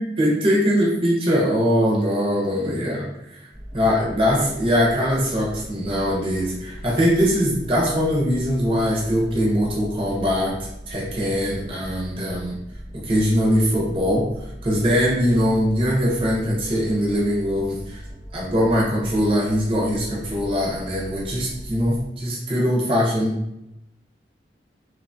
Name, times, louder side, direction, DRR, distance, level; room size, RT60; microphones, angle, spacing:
voice 1, 0.0-3.5 3.7-12.6 12.9-14.3 14.6-18.0 18.3-23.4, equal, 30° right, -3 dB, 0.5 m, -22 dB
sound 1, 3.5-22.1, equal, 30° left, 0.9 m, -39 dB
2.9 x 2.1 x 2.5 m, 0.85 s
head